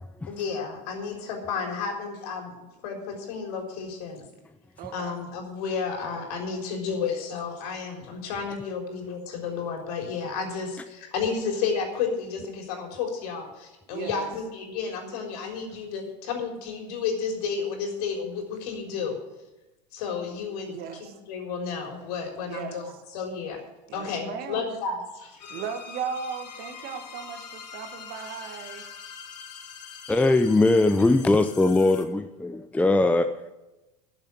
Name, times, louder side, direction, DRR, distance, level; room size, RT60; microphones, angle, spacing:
voice 1, 0.3-2.5 2.8-4.2 4.9-19.2 19.9-23.6 23.9-25.6, left 5 dB, 65° left, 2 dB, 3.9 m, -32 dB
voice 2, 4.8-5.2 13.9-14.3 20.7-21.1 22.4-22.8 23.9-24.7 25.5-28.9, right 7 dB, 45° right, 7 dB, 1.8 m, -36 dB
sound 1, 25.4-32.1, left 6 dB, 85° left, 1.7 m, -43 dB
voice 3, 30.1-33.3, left 2 dB, 5° left, 9 dB, 0.6 m, -20 dB
11.5 x 7.3 x 9.6 m, 1.0 s
hypercardioid pair, 100°, 21 cm